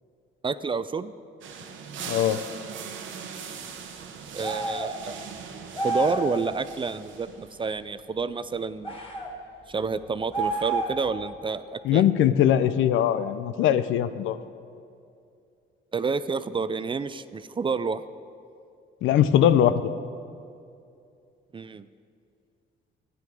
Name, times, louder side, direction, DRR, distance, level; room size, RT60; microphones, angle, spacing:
voice 1, 0.4-1.1 4.3-5.2 5.8-8.9 9.7-12.0 15.9-18.0 21.5-21.9, right 4 dB, 25° right, 14 dB, 0.4 m, -29 dB
sound 1, 1.4-7.7, right 7 dB, 75° right, 1.0 m, -40 dB
voice 2, 2.1-2.4 11.8-14.4 19.0-19.8, left 10 dB, 85° left, 13 dB, 0.5 m, -21 dB
sound 2, 4.4-4.9 5.7-6.3 8.8-9.3 10.3-11.1, right 2 dB, 30° left, 2.8 m, -29 dB
12.5 x 9.4 x 5.1 m, 2.5 s
cardioid pair, 90°, 20 cm